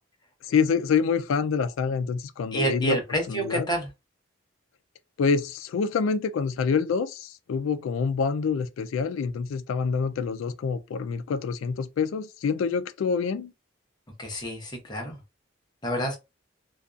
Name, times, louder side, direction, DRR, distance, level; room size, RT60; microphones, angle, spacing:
voice 1, 0.5-3.0 3.3-3.7 5.2-13.5, left 5 dB, 85° left, 0.3 m, -26 dB
voice 2, 2.5-3.9 14.2-15.2 15.8-16.2, right 1 dB, 20° left, 0.7 m, -28 dB
2.5 x 2.3 x 2.4 m
head